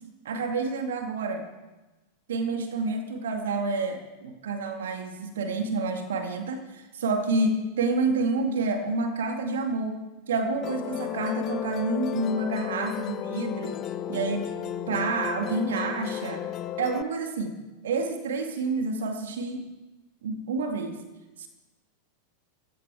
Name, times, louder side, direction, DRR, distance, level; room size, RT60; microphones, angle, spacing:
voice 1, 0.2-1.5 2.3-13.8 14.1-14.5 14.9-16.5 16.8-17.6 17.8-19.7 20.2-21.0 21.4-21.5, right 3 dB, 60° right, 5 dB, 2.2 m, -29 dB
Musical instrument, 10.6-17.0, left 11 dB, 35° left, 0.6 m, -34 dB
15.5 x 14.5 x 4.7 m, 1.1 s
figure-of-eight pair, 90°, 0 cm